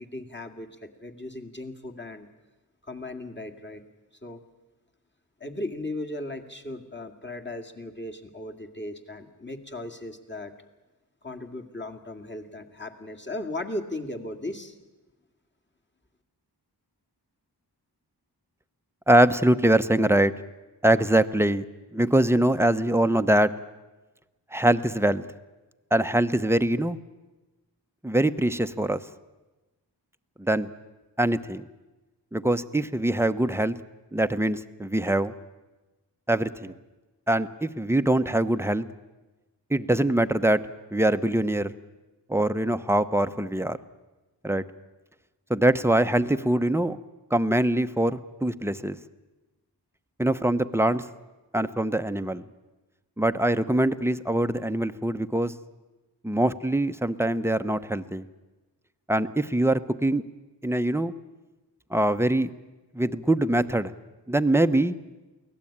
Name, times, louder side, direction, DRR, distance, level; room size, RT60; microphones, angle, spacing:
voice 1, 0.0-2.3 2.8-3.8 4.2-4.4 5.4-10.5 11.2-14.8, left 1 dB, 25° left, 4 dB, 2.3 m, -37 dB
voice 2, 19.1-20.3 20.8-21.6 21.9-23.5 24.5-25.2 25.9-27.0 28.0-29.0 30.4-30.7 31.2-31.6 32.3-33.8 34.1-35.3 36.3-36.7 37.3-38.8 39.7-40.6 40.9-41.7 42.3-43.8 44.4-44.6 45.5-47.0 47.3-49.0 50.2-51.0 51.5-52.5 53.2-55.5 56.2-58.2 59.1-60.2 60.6-61.1 61.9-62.5 62.9-63.9 64.3-64.9, right 1 dB, 5° right, 10 dB, 0.9 m, -23 dB
23.5 x 17.0 x 8.8 m, 1.1 s
wide cardioid pair, 45°, 42 cm